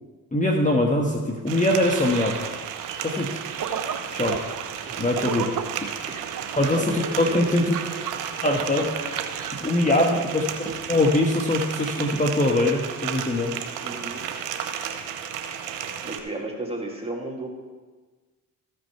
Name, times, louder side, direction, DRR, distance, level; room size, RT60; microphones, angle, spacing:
voice 1, 0.3-2.4 3.0-3.3 4.1-4.4 5.0-5.5 6.6-7.7 8.4-9.0 9.5-10.5 10.9-13.5, left 1 dB, 20° left, 0 dB, 1.3 m, -22 dB
sound 1, 1.5-16.2, right 8 dB, 80° right, 0.8 m, -33 dB
sound 2, 1.8-9.6, right 7 dB, 50° right, 0.9 m, -35 dB
voice 2, 6.7-7.4 9.8-10.2 13.8-14.2 16.0-17.5, right 2 dB, 15° right, -1 dB, 2.6 m, -33 dB
13.5 x 5.2 x 4.6 m, 1.4 s
hypercardioid pair, 45°, 42 cm